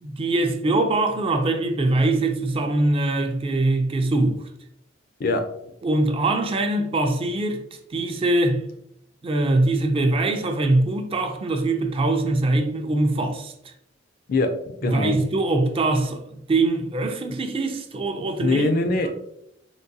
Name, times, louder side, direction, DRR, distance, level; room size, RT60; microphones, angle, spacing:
voice 1, 0.0-4.5 5.8-7.6 7.9-8.6 9.2-13.5 14.8-16.2 16.5-18.6, right 2 dB, 30° right, 0.3 m, -22 dB
voice 2, 14.8-15.2 18.4-19.2, left 2 dB, 50° left, 0.4 m, -22 dB
3.7 x 2.2 x 2.6 m
head